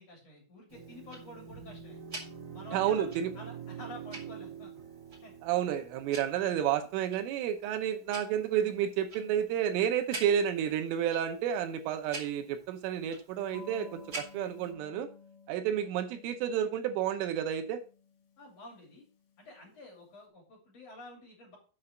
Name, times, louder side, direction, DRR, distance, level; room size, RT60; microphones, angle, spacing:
voice 1, 0.0-2.0 2.5-4.7 5.2-5.3 18.4-19.0 19.4-21.6, left 1 dB, 35° left, -2 dB, 3.7 m, -49 dB
Tick-tock, 0.7-14.7, right 2 dB, 35° right, 1.5 m, -49 dB
sound 1, 0.7-7.1, right 7 dB, 60° right, 2.7 m, -46 dB
voice 2, 2.7-3.3 5.4-15.1 15.5-17.8, right 9 dB, 80° right, 7 dB, 3.3 m, -31 dB
sound 2, 13.5-19.7, left 5 dB, 55° left, 3.7 m, -54 dB
7.6 x 5.6 x 6.0 m, 0.35 s
omnidirectional pair, 5.8 m